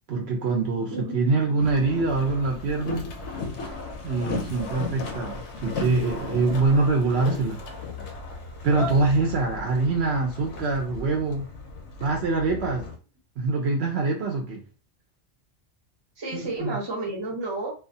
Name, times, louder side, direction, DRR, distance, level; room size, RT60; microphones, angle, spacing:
voice 1, 0.1-3.0 4.0-7.6 8.6-11.5 12.0-12.8 13.4-14.6 16.3-16.8, right 3 dB, 65° right, 1 dB, 0.8 m, -24 dB
Boat Water vehicle, 1.6-13.0, left 3 dB, 70° left, 0.8 m, -35 dB
voice 2, 16.2-17.7, right 2 dB, 25° right, -2 dB, 0.8 m, -31 dB
2.4 x 2.3 x 2.6 m, 0.36 s
omnidirectional pair, 1.2 m